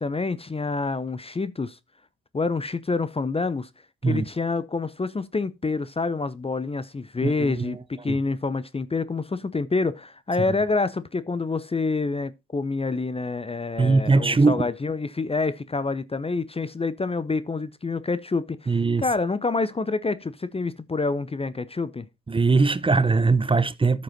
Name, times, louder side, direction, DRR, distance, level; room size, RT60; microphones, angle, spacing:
voice 1, 0.0-1.8 2.3-3.7 4.0-18.7 19.0-22.1, left 3 dB, 20° left, 0.7 m, -27 dB
voice 2, 7.2-7.8 8.1-8.2 13.8-14.7 18.7-19.0 22.3-24.0, right 3 dB, 15° right, 0.7 m, -21 dB
12.5 x 5.3 x 4.0 m
hypercardioid pair, 60°, 30 cm